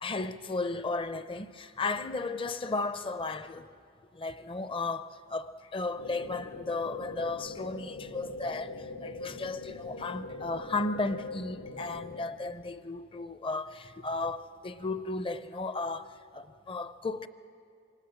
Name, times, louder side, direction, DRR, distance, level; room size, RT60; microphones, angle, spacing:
voice 1, 0.0-3.7 4.1-17.3, left 3 dB, 25° left, 0.6 m, -35 dB
sound 1, 6.0-12.2, left 3 dB, 85° left, 2.1 m, -42 dB
27.5 x 25.5 x 7.3 m
head